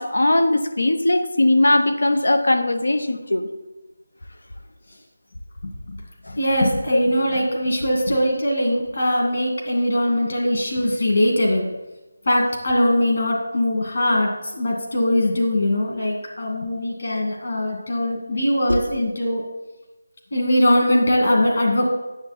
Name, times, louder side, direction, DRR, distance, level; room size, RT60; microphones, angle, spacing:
voice 1, 0.0-3.5 18.7-18.8, left 1 dB, 90° left, 8 dB, 1.0 m, -19 dB
voice 2, 6.3-11.7 12.3-19.4 20.3-21.9, left 1 dB, 50° left, 0 dB, 2.2 m, -21 dB
9.7 x 7.2 x 4.3 m, 1.1 s
figure-of-eight pair, 175°, 0 cm